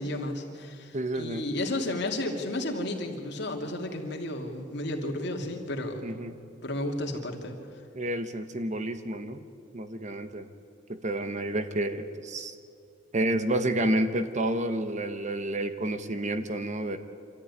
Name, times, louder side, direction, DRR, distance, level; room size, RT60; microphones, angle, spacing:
voice 1, 0.0-6.0 6.6-7.6, left 1 dB, 65° left, 2 dB, 2.7 m, -32 dB
voice 2, 0.9-1.5 6.0-6.3 7.9-9.4 9.7-10.5 10.9-12.5 13.1-17.0, right 1 dB, 40° right, 9 dB, 1.1 m, -30 dB
26.0 x 13.5 x 9.7 m, 2.4 s
head